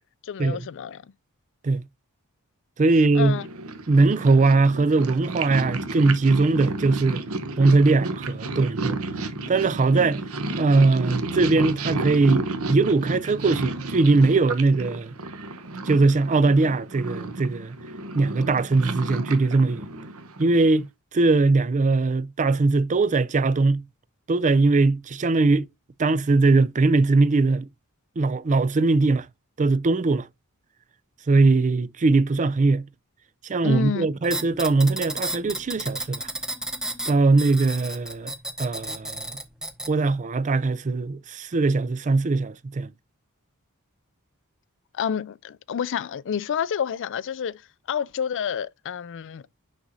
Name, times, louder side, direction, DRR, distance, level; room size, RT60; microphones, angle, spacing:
voice 1, 0.2-1.0 3.1-3.5 33.6-34.1 44.9-49.4, left 7 dB, 60° left, 0.4 m, -29 dB
voice 2, 2.8-3.4 3.9-7.2 7.6-9.0 9.5-10.2 10.6-15.1 15.8-17.8 18.1-19.8 20.4-23.8 24.3-25.7 26.0-27.7 28.2-29.3 29.6-30.3 31.3-32.9 33.4-36.3 37.1-38.3 38.6-39.4 39.9-42.9, right 3 dB, 35° right, 0.4 m, -20 dB
Purr, 3.2-20.8, right 2 dB, 70° right, 1.1 m, -32 dB
sound 1, 34.2-39.9, right 1 dB, 5° right, 0.9 m, -33 dB
6.4 x 6.1 x 2.7 m
head